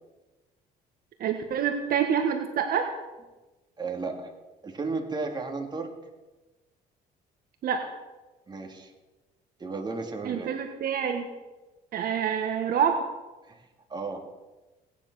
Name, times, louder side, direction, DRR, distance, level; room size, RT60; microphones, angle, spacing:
voice 1, 1.2-2.9 7.6-7.8 10.2-11.3 11.9-13.0, right 8 dB, 60° right, 5 dB, 1.6 m, -26 dB
voice 2, 3.8-4.3 4.6-5.9 8.5-8.9 9.6-10.5 13.5-13.6 13.9-14.2, right 3 dB, 25° right, 2 dB, 2.8 m, -33 dB
17.5 x 10.0 x 6.3 m, 1.1 s
cardioid pair, 110°, 17 cm